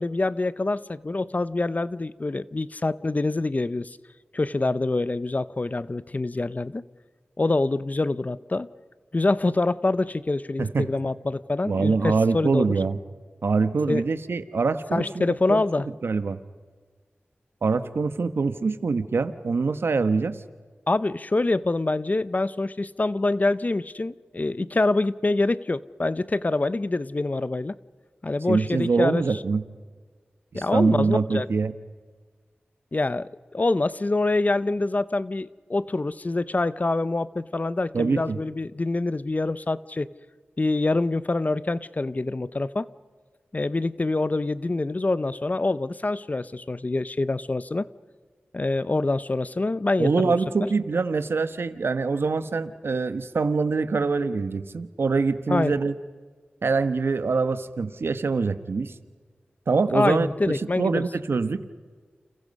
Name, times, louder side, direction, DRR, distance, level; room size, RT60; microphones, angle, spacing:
voice 1, 0.0-4.0 4.3-6.8 7.4-8.7 9.1-12.7 13.9-14.0 14.9-15.9 20.9-27.8 28.2-29.2 30.5-31.5 32.9-40.1 40.6-42.9 43.5-47.9 48.5-50.3 55.5-55.7 59.9-61.0, left 2 dB, 40° left, 16 dB, 0.8 m, -25 dB
voice 2, 11.6-13.0 13.4-15.6 16.0-16.4 17.6-20.4 28.5-29.6 30.5-31.7 37.9-38.4 50.0-55.9 56.6-58.9 59.7-61.6, right 4 dB, 80° right, 11 dB, 1.2 m, -24 dB
30.0 x 28.0 x 5.4 m, 1.5 s
cardioid pair, 45°, 4 cm